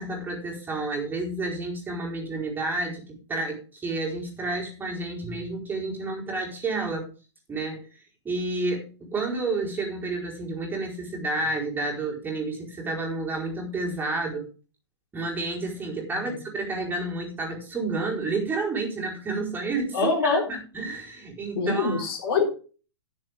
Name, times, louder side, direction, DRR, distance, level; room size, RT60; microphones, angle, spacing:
voice 1, 0.0-7.1 7.5-7.9 8.2-14.4 15.1-22.0, right 2 dB, 15° right, -2 dB, 4.5 m, -30 dB
voice 2, 19.9-20.4 21.6-22.4, left 4 dB, 55° left, 3 dB, 3.8 m, -24 dB
17.0 x 7.2 x 3.6 m, 0.36 s
hypercardioid pair, 120°, 15 cm